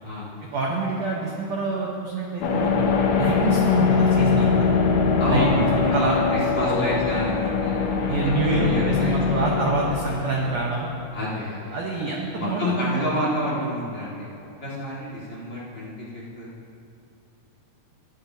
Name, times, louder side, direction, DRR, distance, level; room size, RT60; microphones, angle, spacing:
voice 1, 0.5-2.9 3.2-4.7 5.3-5.5 5.9-7.0 8.1-10.9 11.7-13.1, right 3 dB, 75° right, -2 dB, 1.5 m, -26 dB
sound 1, 2.4-11.0, left 5 dB, 70° left, 1.7 m, -22 dB
voice 2, 5.2-9.2 11.1-11.7 12.3-14.3 14.6-16.5, left 1 dB, 35° left, -9 dB, 2.4 m, -29 dB
20.5 x 10.0 x 2.8 m, 2.8 s
omnidirectional pair, 4.7 m